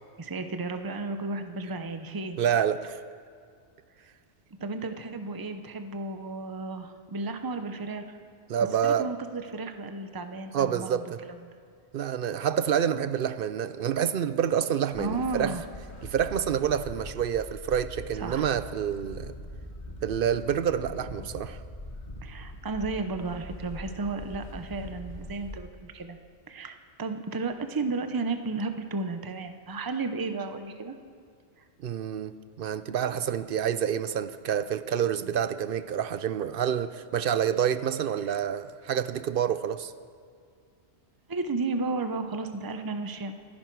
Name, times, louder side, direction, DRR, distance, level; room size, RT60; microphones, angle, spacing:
voice 1, 0.2-2.4 4.6-8.2 8.8-11.0 15.0-15.6 18.2-18.5 22.2-26.2 26.5-31.0 38.2-38.3 41.3-43.3, right 3 dB, 20° right, 0.7 m, -33 dB
voice 2, 2.4-3.0 8.5-9.1 10.5-11.2 11.9-15.6 16.0-19.3 20.0-21.6 31.8-39.9, right 9 dB, 60° right, 0.7 m, -28 dB
sound 1, 14.9-25.6, left 1 dB, 40° left, 1.5 m, -42 dB
26.0 x 10.5 x 4.7 m
omnidirectional pair, 1.1 m